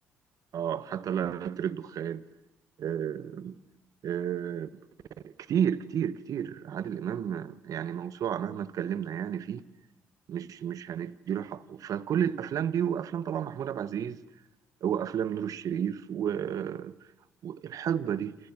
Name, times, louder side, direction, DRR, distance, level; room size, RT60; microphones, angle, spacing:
voice 1, 0.5-2.2 2.8-3.6 4.0-4.7 5.2-9.6 10.3-14.2 14.8-16.9 17.4-18.4, right 9 dB, 65° right, 1.2 m, -31 dB
29.0 x 28.0 x 6.2 m
supercardioid pair, 60°, 7 cm